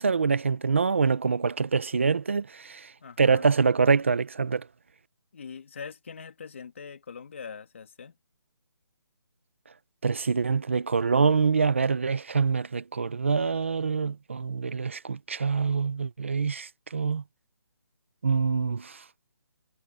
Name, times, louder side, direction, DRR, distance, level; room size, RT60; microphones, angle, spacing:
voice 1, 0.0-2.9 3.2-4.6 10.0-17.2 18.2-19.0, right 5 dB, 30° right, 1.0 m, -25 dB
voice 2, 3.0-3.5 5.3-8.1, left 6 dB, 30° left, 2.8 m, -42 dB
hypercardioid pair, 180°, 13 cm